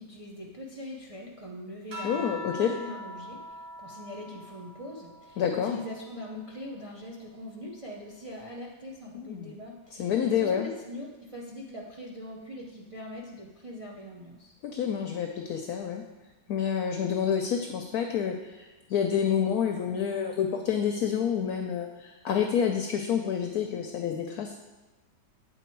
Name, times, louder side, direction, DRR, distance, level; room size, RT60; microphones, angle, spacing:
voice 1, 0.0-3.4 3.8-14.5, left 1 dB, 45° right, -2 dB, 0.4 m, -42 dB
sound 1, 1.9-6.7 7.2-8.9 10.1-10.6, left 1 dB, 60° right, 1.7 m, -44 dB
voice 2, 2.0-2.7 5.4-5.8 9.1-9.5 10.0-10.7 14.6-16.0 16.5-24.5, left 8 dB, 70° left, 4 dB, 0.9 m, -28 dB
8.2 x 4.0 x 4.5 m, 1.2 s
omnidirectional pair, 1.9 m